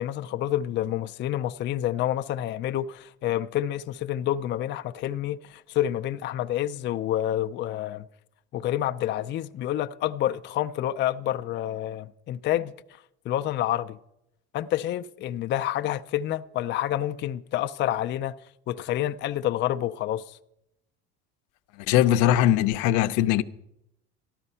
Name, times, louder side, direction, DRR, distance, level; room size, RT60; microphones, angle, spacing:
voice 1, 0.0-8.1 8.5-12.7 13.3-14.0 14.5-18.3 18.7-20.4, left 12 dB, 35° left, 0.4 m, -28 dB
voice 2, 21.9-23.4, left 12 dB, 75° left, 0.7 m, -20 dB
13.5 x 12.0 x 5.6 m
cardioid pair, 125°, 31 cm